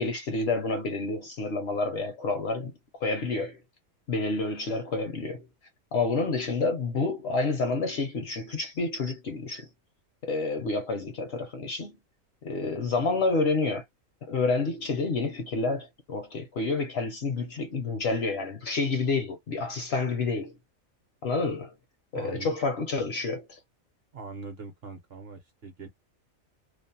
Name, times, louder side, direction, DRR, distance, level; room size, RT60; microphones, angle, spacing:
voice 1, 0.0-2.7 3.0-3.6 4.1-5.5 5.9-9.7 10.2-12.0 12.4-13.8 14.2-20.6 21.2-21.7 22.1-23.6, left 3 dB, 60° left, 0.7 m, -29 dB
voice 2, 22.1-22.5 24.1-25.9, right 4 dB, 55° right, 0.8 m, -41 dB
2.5 x 2.0 x 2.6 m
omnidirectional pair, 1.4 m